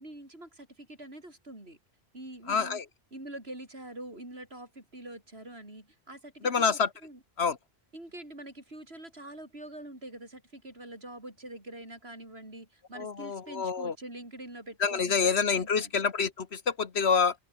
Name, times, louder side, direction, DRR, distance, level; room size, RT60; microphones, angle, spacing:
voice 1, 0.0-1.8 2.1-2.8 3.1-7.2 7.9-15.9, right 1 dB, 75° right, 7.4 m, -45 dB
voice 2, 2.5-2.8 6.4-6.9 7.4-7.6 13.0-13.9 14.8-17.4, left 5 dB, 80° left, 1.7 m, -27 dB
open air
omnidirectional pair, 1.1 m